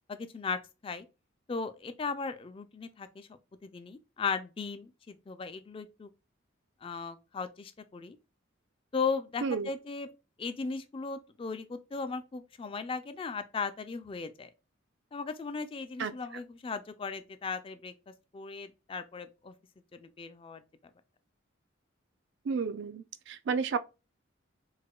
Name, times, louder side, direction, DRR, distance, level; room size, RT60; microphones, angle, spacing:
voice 1, 0.1-1.1 1.5-6.1 6.8-8.2 8.9-10.1 10.4-14.5 15.1-17.9 18.3-19.5 19.9-20.6, left 5 dB, 25° left, 0.3 m, -37 dB
voice 2, 22.5-23.8, right 5 dB, 60° right, 0.3 m, -31 dB
4.7 x 2.1 x 2.3 m
head